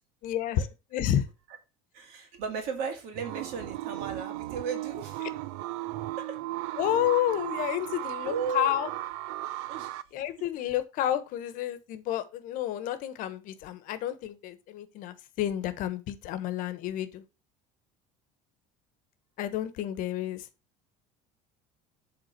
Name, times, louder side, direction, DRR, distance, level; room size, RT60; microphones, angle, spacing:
voice 1, 0.2-1.2 6.8-8.9 10.1-17.2 19.4-20.5, left 11 dB, 55° left, 1.2 m, -30 dB
voice 2, 1.9-5.3 6.3-6.4 8.2-8.8 9.7-10.0, right 6 dB, 65° right, 2.1 m, -35 dB
sound 1, 3.1-10.0, right 16 dB, 85° right, 0.5 m, -36 dB
8.1 x 3.8 x 5.9 m
cardioid pair, 145°, 16 cm